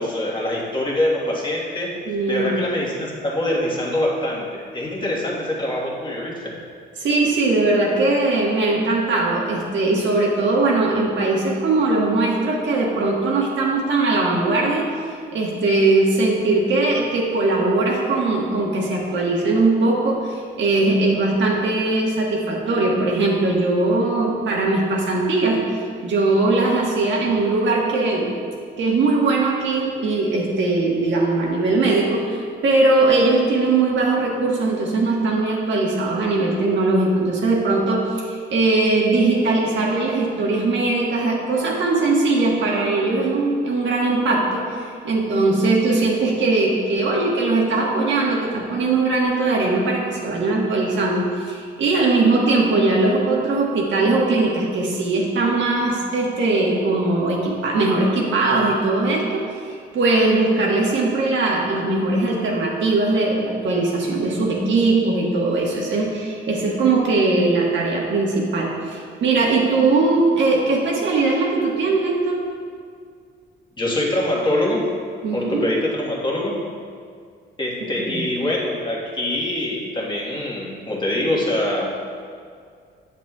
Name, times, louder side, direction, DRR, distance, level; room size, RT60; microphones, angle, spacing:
voice 1, 0.0-2.0 2.3-6.5 73.8-74.9 75.3-76.7 77.6-81.9, left 1 dB, 25° left, -3 dB, 1.5 m, -24 dB
voice 2, 2.1-2.6 7.0-14.9 15.3-25.6 26.0-28.3 28.8-32.4 32.6-59.4 59.9-72.4 75.2-75.6 78.0-78.2, right 3 dB, 70° right, -2 dB, 1.4 m, -20 dB
8.1 x 7.4 x 2.4 m, 2.2 s
cardioid pair, 90°, 20 cm